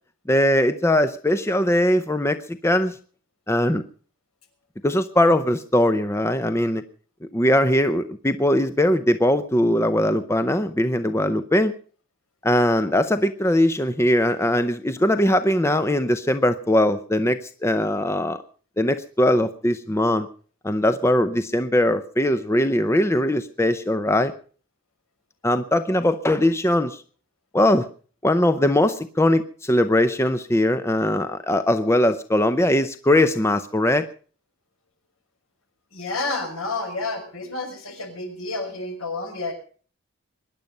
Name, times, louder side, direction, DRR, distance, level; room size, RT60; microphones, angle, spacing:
voice 1, 0.3-3.0 3.5-3.8 4.8-6.8 7.3-11.7 12.4-18.4 18.8-20.3 20.6-24.3 25.4-27.0 27.5-27.9 28.2-34.1, left 1 dB, 10° left, 10 dB, 0.7 m, -20 dB
voice 2, 35.9-39.5, left 3 dB, 75° left, 4 dB, 6.0 m, -30 dB
23.5 x 10.5 x 5.3 m, 0.43 s
head